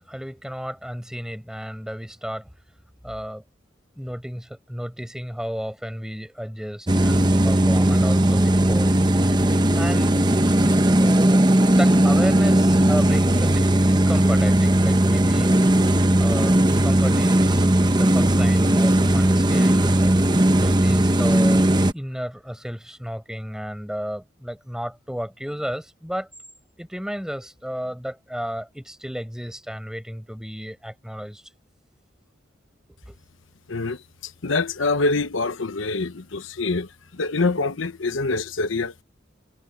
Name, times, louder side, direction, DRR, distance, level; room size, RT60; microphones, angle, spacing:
voice 1, 0.1-2.5 3.0-3.4 4.0-8.9 9.7-10.3 11.0-15.9 16.2-20.1 20.6-26.3 26.8-31.4 33.1-33.2, equal, 5° right, 5.1 m, -33 dB
sound 1, 6.9-21.9, right 1 dB, 20° right, 1.1 m, -18 dB
voice 2, 33.7-39.0, left 3 dB, 80° left, 1.0 m, -25 dB
head